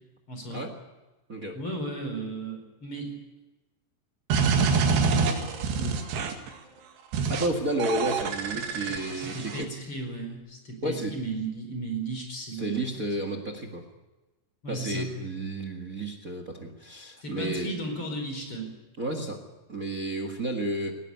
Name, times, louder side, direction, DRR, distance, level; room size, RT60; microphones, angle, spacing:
voice 1, 0.3-0.6 1.5-3.1 8.5-12.8 14.6-15.1 17.2-18.7, right 2 dB, 30° left, 3 dB, 5.3 m, -35 dB
sound 1, 4.3-6.5 7.1-7.5 7.8-9.6, right 5 dB, 75° right, 4.1 m, -26 dB
voice 2, 7.3-9.7 10.8-11.1 12.6-13.8 14.7-17.7 19.0-19.4 19.7-21.0, right 1 dB, 45° right, 5 dB, 1.1 m, -31 dB
19.0 x 18.5 x 9.6 m, 1.1 s
omnidirectional pair, 4.9 m